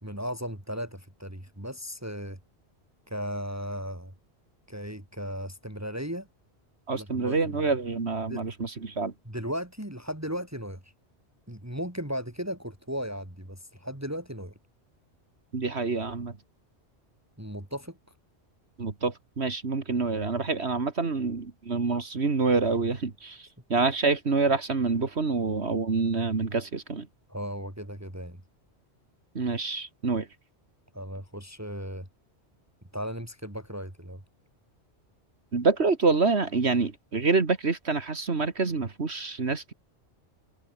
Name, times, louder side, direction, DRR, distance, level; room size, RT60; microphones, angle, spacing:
voice 1, 0.0-2.4 3.1-4.1 4.7-6.3 6.9-7.5 8.3-8.4 9.3-10.8 11.5-14.5 17.4-18.0 27.3-28.4 30.9-32.1 32.9-34.2, equal, 15° right, 4.1 m, -36 dB
voice 2, 6.9-9.1 15.5-16.4 18.8-27.1 29.3-30.3 35.5-39.7, right 4 dB, 70° right, 2.4 m, -27 dB
omnidirectional pair, 1.1 m